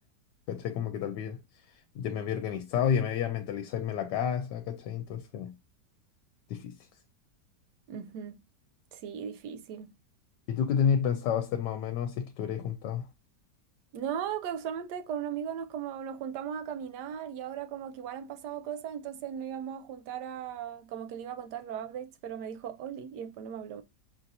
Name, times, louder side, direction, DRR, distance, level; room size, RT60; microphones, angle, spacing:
voice 1, 0.5-1.4 1.9-5.5 6.5-6.7 10.5-13.1, left 8 dB, 80° left, 1.2 m, -30 dB
voice 2, 7.9-8.4 8.9-9.9 13.9-23.8, right 8 dB, 75° right, 1.2 m, -37 dB
5.6 x 2.7 x 2.5 m
omnidirectional pair, 1.8 m